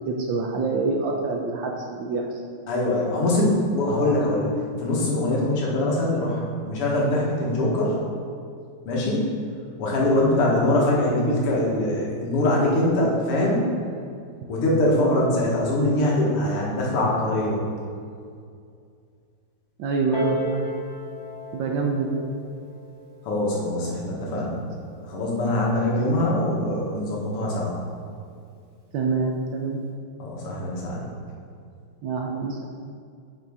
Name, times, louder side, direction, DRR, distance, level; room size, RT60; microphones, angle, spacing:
voice 1, 0.1-2.4 15.0-15.3 19.8-20.7 21.5-22.2 25.9-26.3 28.9-29.8 32.0-32.7, right 4 dB, 70° right, 1 dB, 1.2 m, -26 dB
voice 2, 2.7-4.5 4.8-8.0 8.9-9.3 9.8-13.7 14.5-17.6 23.2-24.6 24.9-27.8 30.2-31.1, left 1 dB, 90° left, -3 dB, 2.3 m, -23 dB
Piano, 20.1-25.3 26.1-26.2, left 3 dB, 30° right, 0.4 m, -36 dB
8.7 x 5.7 x 3.6 m, 2.3 s
omnidirectional pair, 2.4 m